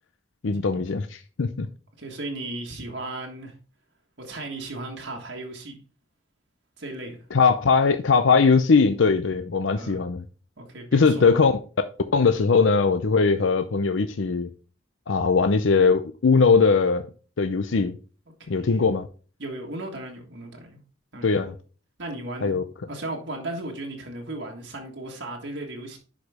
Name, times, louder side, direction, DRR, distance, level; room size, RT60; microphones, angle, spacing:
voice 1, 0.4-1.7 7.3-10.2 10.9-11.5 12.1-14.5 15.1-17.1 17.4-18.0 18.5-19.1 21.2-21.5 22.4-22.6, left 4 dB, 80° left, 0.6 m, -20 dB
voice 2, 2.0-3.5 4.2-5.8 6.8-7.2 9.7-10.0 10.6-11.5 18.4-18.8 19.4-20.8 21.1-21.4 22.0-22.6 22.9-26.0, right 2 dB, 65° right, 1.6 m, -36 dB
10.5 x 5.0 x 3.5 m
head